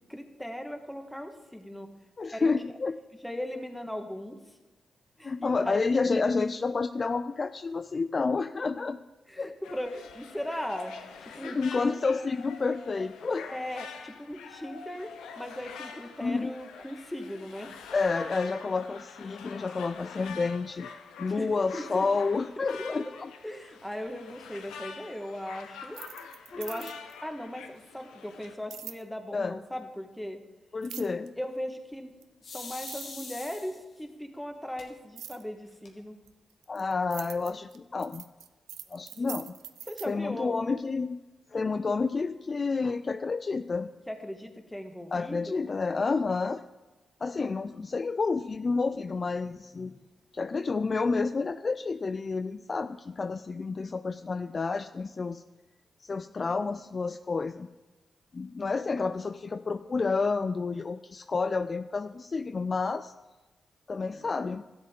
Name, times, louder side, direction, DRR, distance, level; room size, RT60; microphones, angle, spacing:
voice 1, 0.1-1.9 2.3-2.5 3.2-4.4 5.2-5.9 9.3-10.9 11.2-12.0 13.5-17.7 21.3-22.1 22.6-23.1 23.4-26.0 26.5-30.4 31.4-32.1 32.5-36.2 39.9-40.7 44.1-45.7 47.3-47.7, equal, 5° left, 5 dB, 1.5 m, -38 dB
voice 2, 2.2-3.0 5.2-9.0 9.4-9.5 11.4-13.5 16.2-16.5 17.9-20.9 21.2-23.3 26.5-26.9 29.3-29.6 30.7-31.3 36.7-38.3 38.9-39.5 40.1-41.2 41.5-43.9 45.1-46.6 47.2-49.9 50.3-55.4 56.0-57.7 58.3-63.1 63.9-64.7, left 4 dB, 45° left, 11 dB, 0.3 m, -30 dB
sound 1, 9.6-28.5, left 6 dB, 85° left, 0.6 m, -45 dB
sound 2, 25.8-27.2 28.7-29.0 30.8-31.3 32.2-32.3 32.6-33.7 35.2-35.4 36.3-40.1, right 10 dB, 85° right, 0.4 m, -43 dB
sound 3, 32.4-34.0 34.8-34.9 35.3-35.4 35.7-36.3, left 4 dB, 70° left, 1.4 m, -43 dB
12.5 x 7.6 x 3.7 m, 1.2 s
supercardioid pair, 40°, 0 cm